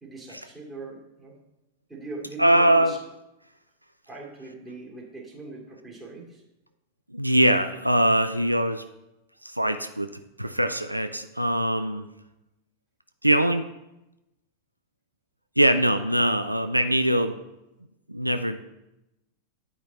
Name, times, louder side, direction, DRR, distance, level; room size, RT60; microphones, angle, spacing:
voice 1, 0.0-1.3 1.9-3.0 4.1-6.4, right 3 dB, 10° right, -4 dB, 2.7 m, -40 dB
voice 2, 2.4-3.0 7.1-8.8 9.4-10.1 10.4-12.1 13.2-13.7 15.6-17.4 18.1-18.6, right 1 dB, 90° right, 9 dB, 0.3 m, -22 dB
9.4 x 5.1 x 4.0 m, 0.93 s
figure-of-eight pair, 90°, 0 cm